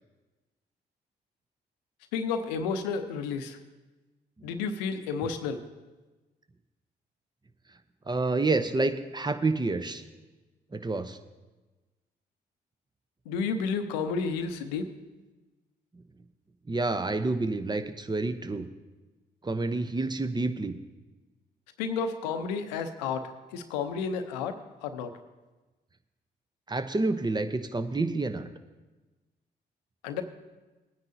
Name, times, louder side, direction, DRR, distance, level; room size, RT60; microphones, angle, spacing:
voice 1, 2.1-3.6 4.4-5.6 13.3-14.9 21.8-25.1 30.0-30.2, left 5 dB, 85° left, 9 dB, 0.7 m, -31 dB
voice 2, 8.1-10.0 10.7-11.2 16.7-18.7 19.4-20.8 26.7-28.5, right 3 dB, 20° right, 10 dB, 0.8 m, -28 dB
19.0 x 9.5 x 2.7 m, 1.2 s
hypercardioid pair, 45°, 21 cm